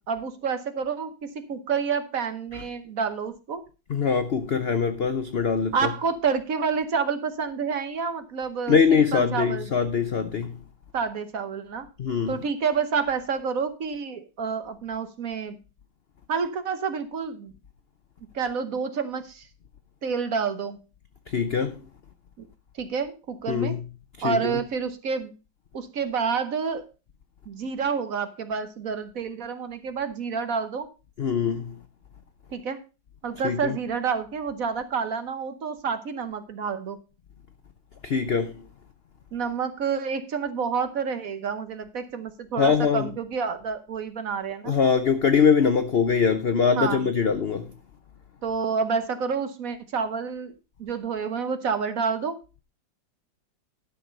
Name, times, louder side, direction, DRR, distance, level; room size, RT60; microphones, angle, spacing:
voice 1, 0.0-3.6 5.7-9.7 10.9-11.9 12.3-15.6 16.3-17.5 18.3-19.5 20.0-20.8 22.4-22.5 22.8-23.7 24.2-25.3 25.7-26.9 27.5-30.9 32.5-32.8 33.2-37.0 39.3-44.7 46.8-47.1 48.4-50.5 50.8-52.4, right 5 dB, 55° right, 1.2 m, -29 dB
voice 2, 3.9-5.9 8.7-10.6 12.0-12.4 21.3-21.9 23.5-23.8 24.2-24.6 31.2-31.8 33.4-33.8 38.0-38.7 42.6-43.1 44.6-47.7, left 6 dB, 80° left, 0.5 m, -23 dB
12.0 x 6.2 x 5.2 m
omnidirectional pair, 2.1 m